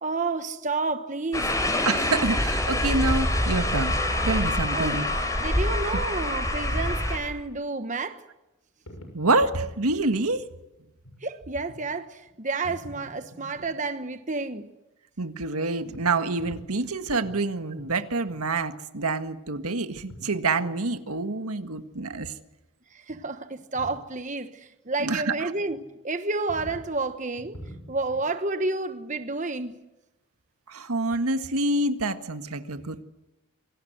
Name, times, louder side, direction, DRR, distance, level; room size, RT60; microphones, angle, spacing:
voice 1, 0.0-1.6 4.7-5.0 5.4-8.2 11.2-14.7 22.9-27.6 27.9-29.8, right 3 dB, 35° right, 1.2 m, -30 dB
sound 1, 1.3-7.2, left 1 dB, 15° left, 5.1 m, -26 dB
voice 2, 1.8-3.9 4.2-5.1 9.1-10.4 15.2-22.3 25.0-25.5 30.7-33.0, right 3 dB, 80° right, 1.7 m, -27 dB
sound 2, 8.9-9.2 9.6-9.8 10.3-10.5 11.0-11.2 11.7-11.9 12.2-12.3 12.6-13.7 15.8-16.9 17.2-17.4 17.8-18.0 18.2-18.5 18.7-18.8 19.0-19.1 19.9-20.2 20.5-20.9 23.1-23.2 23.5-24.0 25.7-25.8 26.5-26.9 27.3-28.2, equal, 85° left, 6.8 m, -45 dB
26.5 x 25.0 x 8.0 m
head